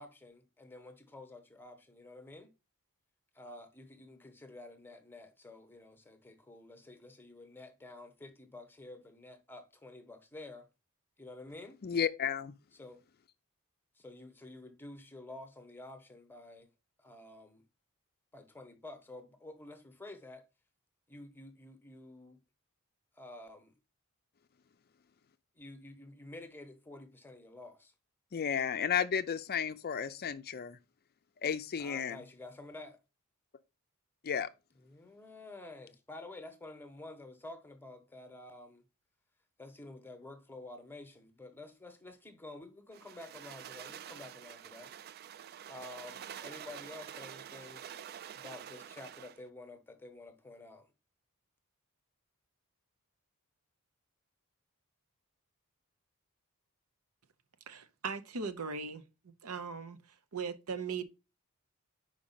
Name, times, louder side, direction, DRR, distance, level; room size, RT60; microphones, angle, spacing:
voice 1, 0.0-2.5 3.3-10.7 11.2-11.8 12.7-13.0 14.0-16.7 17.0-17.6 18.3-20.4 21.1-22.4 23.1-23.7 25.5-27.9 31.8-33.0 34.8-38.8 39.6-44.9 45.7-47.8 48.3-50.9, left 2 dB, 10° left, 1.0 m, -50 dB
voice 2, 11.8-12.5 28.3-30.8 31.4-32.2 34.2-34.5, left 7 dB, 45° left, 0.4 m, -33 dB
sound 1, 42.9-49.4, right 9 dB, 45° right, 0.3 m, -47 dB
voice 3, 57.7-59.0 59.4-60.0 60.3-61.0, right 5 dB, 80° right, 0.9 m, -38 dB
5.1 x 5.0 x 5.5 m
head